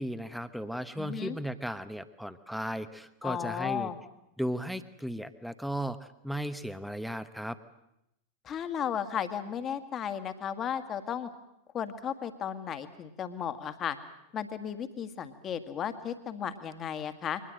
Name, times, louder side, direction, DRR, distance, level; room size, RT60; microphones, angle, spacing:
voice 1, 0.0-3.9 4.4-7.6, equal, ahead, 12 dB, 1.1 m, -36 dB
voice 2, 1.0-1.4 3.2-4.0 8.4-11.3 11.7-14.0 14.3-17.4, left 8 dB, 30° left, 10 dB, 1.9 m, -34 dB
23.5 x 19.5 x 7.8 m, 0.84 s
figure-of-eight pair, 90°, 0 cm